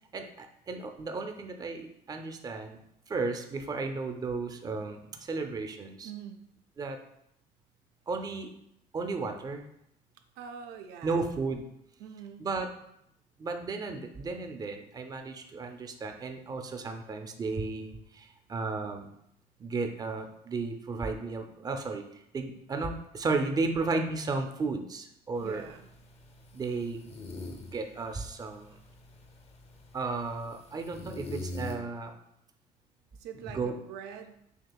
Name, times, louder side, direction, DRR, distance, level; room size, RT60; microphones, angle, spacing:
voice 1, 0.1-2.8 3.1-6.1 6.8-7.0 8.1-8.5 8.9-9.6 11.0-11.7 12.4-12.7 13.4-19.1 19.6-22.0 22.3-25.6 26.5-27.1 27.7-28.8 29.9-32.2 33.4-33.7, right 3 dB, 25° right, 5 dB, 0.4 m, -34 dB
voice 2, 6.0-6.4 10.4-11.2 12.0-12.5 25.4-25.9 33.2-34.4, right 7 dB, 85° right, 6 dB, 0.4 m, -44 dB
sound 1, 25.4-31.8, left 2 dB, 40° left, 0.6 m, -44 dB
6.4 x 2.4 x 2.2 m, 0.78 s
cardioid pair, 110°, 17 cm